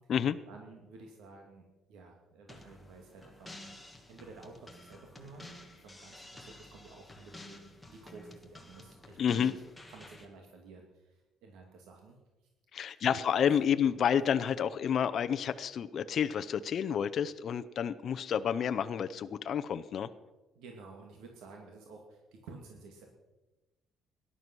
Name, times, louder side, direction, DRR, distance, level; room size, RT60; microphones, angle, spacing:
voice 1, 0.5-3.6 4.1-5.5 5.8-9.6 9.9-12.2 12.8-13.5 20.6-23.1, right 3 dB, 85° right, 2 dB, 2.4 m, -52 dB
sound 1, 2.5-10.3, left 1 dB, 5° left, 1.5 m, -51 dB
voice 2, 9.2-9.5 12.7-20.1, left 8 dB, 40° left, 11 dB, 0.6 m, -30 dB
18.5 x 11.0 x 6.2 m, 1.1 s
cardioid pair, 175°, 0 cm